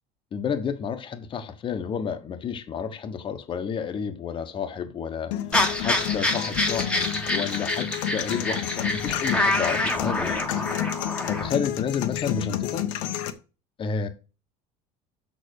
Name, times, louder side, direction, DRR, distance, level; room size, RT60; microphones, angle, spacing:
voice 1, 0.3-5.3 5.8-10.5 11.3-12.8 13.8-14.1, left 6 dB, 30° left, 1.2 m, -31 dB
sound 1, 5.3-13.3, left 11 dB, 85° left, 1.1 m, -30 dB
sound 2, 5.5-11.5, left 2 dB, 5° left, 1.3 m, -27 dB
6.7 x 6.2 x 6.5 m
supercardioid pair, 125°, 16 cm